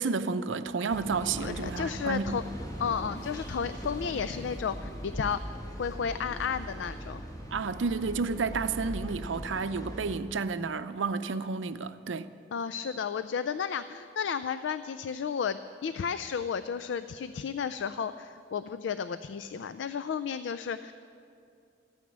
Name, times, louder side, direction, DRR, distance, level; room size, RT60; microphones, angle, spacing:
voice 1, 0.0-2.4 7.5-12.3, right 4 dB, 90° right, 0.6 m, -31 dB
sound 1, 0.9-10.2, equal, 20° left, 1.8 m, -40 dB
voice 2, 1.4-2.4 2.8-5.4 5.8-7.2 12.5-20.9, left 6 dB, 70° left, 0.4 m, -33 dB
14.0 x 9.3 x 8.6 m
head